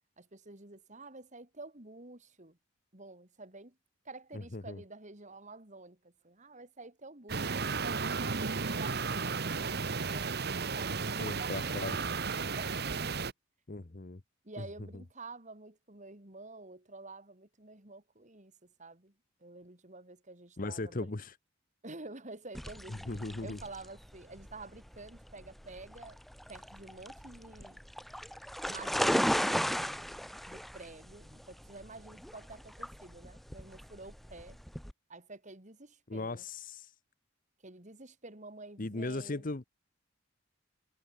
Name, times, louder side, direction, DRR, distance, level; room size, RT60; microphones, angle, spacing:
voice 1, 0.2-2.6 2.9-3.8 4.0-8.1 8.8-10.3 10.6-13.3 14.4-19.1 19.4-21.1 21.8-26.2 26.5-27.8 28.7-34.6 35.1-36.4 37.6-39.5, right 2 dB, 40° right, 3.1 m, -49 dB
voice 2, 4.3-4.8 11.2-12.0 13.7-14.2 20.6-21.3 22.9-23.6 36.1-36.9 38.8-39.6, left 2 dB, 45° left, 1.0 m, -38 dB
sound 1, 7.3-13.3, right 4 dB, 55° right, 1.3 m, -34 dB
sound 2, 22.5-34.9, equal, ahead, 0.4 m, -36 dB
head